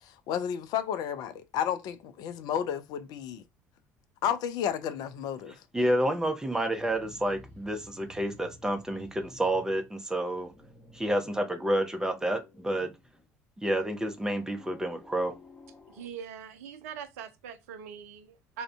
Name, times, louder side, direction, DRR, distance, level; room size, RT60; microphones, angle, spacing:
voice 1, 0.0-3.4 4.2-5.5, left 9 dB, 50° left, 0.4 m, -32 dB
voice 2, 5.7-10.5 10.9-12.9 13.6-15.3, right 1 dB, 5° right, 0.6 m, -29 dB
sound 1, 6.7-9.9 10.2-13.3 14.1-16.1, equal, 20° left, 1.0 m, -53 dB
voice 3, 15.9-18.6, right 7 dB, 65° right, 0.4 m, -42 dB
2.4 x 2.1 x 3.4 m
figure-of-eight pair, 55°, 9 cm